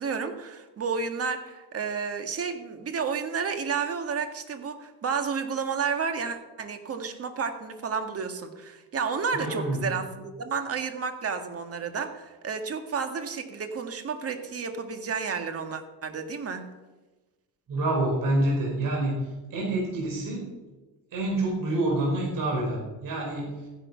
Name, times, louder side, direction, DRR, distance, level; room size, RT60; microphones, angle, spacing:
voice 1, 0.0-16.7, right 5 dB, 35° right, 7 dB, 1.9 m, -31 dB
voice 2, 9.3-9.8 17.7-19.1 19.5-20.4 21.1-23.5, right 2 dB, 50° right, -1 dB, 4.9 m, -27 dB
15.0 x 10.5 x 5.7 m, 1.2 s
cardioid pair, 115°, 41 cm